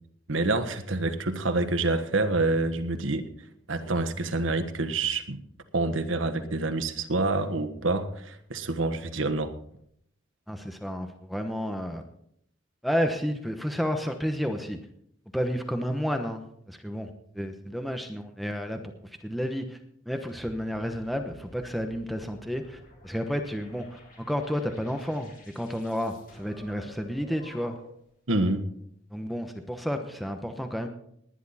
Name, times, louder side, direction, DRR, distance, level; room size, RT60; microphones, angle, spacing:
voice 1, 0.3-3.3 3.7-5.4 5.7-9.5 28.3-28.7, right 2 dB, 85° right, 9 dB, 1.4 m, -27 dB
voice 2, 10.5-12.0 12.8-14.8 15.3-17.1 17.3-18.8 19.2-19.8 20.1-27.8 29.1-30.9, equal, ahead, 5 dB, 1.0 m, -31 dB
sound 1, 20.3-28.1, left 2 dB, 45° left, 3.9 m, -52 dB
19.0 x 10.5 x 4.2 m, 0.70 s
head